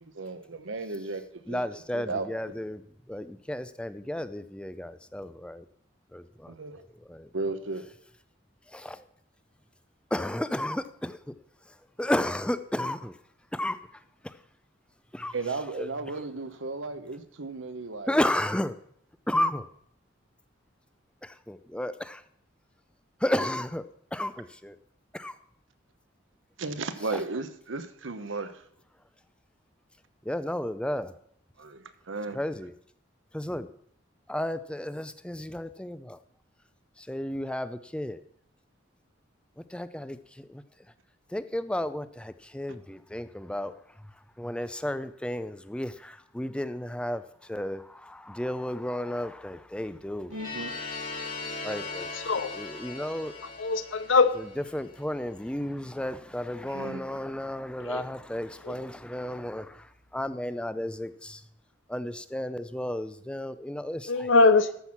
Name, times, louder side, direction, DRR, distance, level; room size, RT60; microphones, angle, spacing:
voice 1, 0.0-2.6 6.5-6.8 7.3-7.8 15.3-18.2 26.6-28.6 31.6-32.4 50.3-50.7 56.7-57.0, right 3 dB, 80° right, 10 dB, 1.0 m, -35 dB
voice 2, 1.5-2.8 3.1-5.6 6.1-6.5 7.1-7.3 8.7-9.0 10.1-11.2 12.0-13.2 13.5-13.8 14.2-14.3 15.1-15.3 15.8-15.9 18.1-18.8 19.3-19.7 21.2-22.2 23.2-23.8 24.1-24.8 25.1-25.3 30.3-31.1 32.3-32.7 33.3-33.7 34.3-36.2 37.0-38.2 39.7-40.6 41.3-43.7 44.4-47.2 47.5-50.3 51.6-52.1 52.5-53.3 54.4-59.9 60.1-61.4 61.9-64.3, left 1 dB, 5° left, 13 dB, 0.5 m, -32 dB
sound 1, 50.3-55.2, left 3 dB, 45° left, 2.6 m, -39 dB
voice 3, 53.6-54.3 57.9-58.0 58.6-58.7 64.1-64.8, left 3 dB, 80° left, 12 dB, 0.8 m, -22 dB
14.0 x 6.2 x 5.9 m, 0.66 s
head